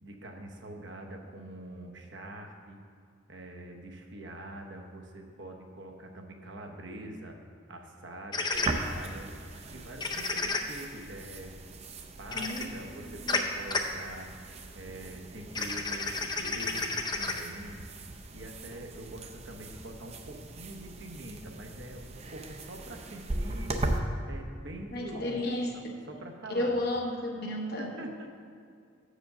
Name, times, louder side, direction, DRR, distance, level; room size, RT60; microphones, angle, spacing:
voice 1, 0.0-2.9 3.3-7.4 7.7-9.3 9.7-11.6 12.2-14.3 14.7-17.9 18.3-23.8 24.3-26.8 27.8-28.3, right 1 dB, 65° right, 2 dB, 0.9 m, -44 dB
sound 1, 8.3-8.7 10.0-10.6 12.3-12.6 13.3-13.4 13.7-13.8 15.5-17.4, left 4 dB, 20° left, 0.5 m, -30 dB
sound 2, 8.5-24.0, right 2 dB, 35° right, 0.5 m, -39 dB
voice 2, 12.3-12.6 13.0-13.4 24.9-25.9 26.5-27.9, left 1 dB, 55° left, 0 dB, 0.8 m, -32 dB
6.7 x 5.0 x 6.6 m, 2.3 s
head